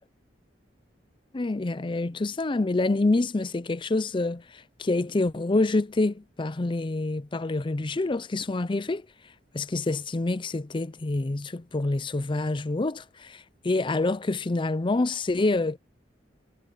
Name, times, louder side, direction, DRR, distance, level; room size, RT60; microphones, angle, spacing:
voice 1, 1.3-4.4 4.8-9.0 9.5-13.4 13.6-15.8, left 2 dB, 25° left, 0.5 m, -27 dB
head